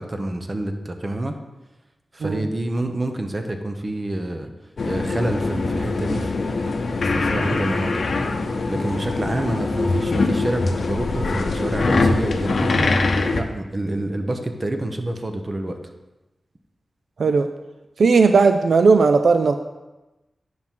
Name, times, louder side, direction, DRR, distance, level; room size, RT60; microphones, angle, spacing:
voice 1, 0.0-1.4 2.1-4.5 4.8-6.3 7.0-8.0 8.7-12.9 13.3-15.8, right 1 dB, 30° right, 6 dB, 0.8 m, -27 dB
sound 1, 4.8-13.4, left 3 dB, 65° left, 0.7 m, -23 dB
voice 2, 18.0-19.5, right 4 dB, 75° right, 8 dB, 0.3 m, -16 dB
9.7 x 6.0 x 3.7 m, 1.0 s
wide cardioid pair, 85°, 0 cm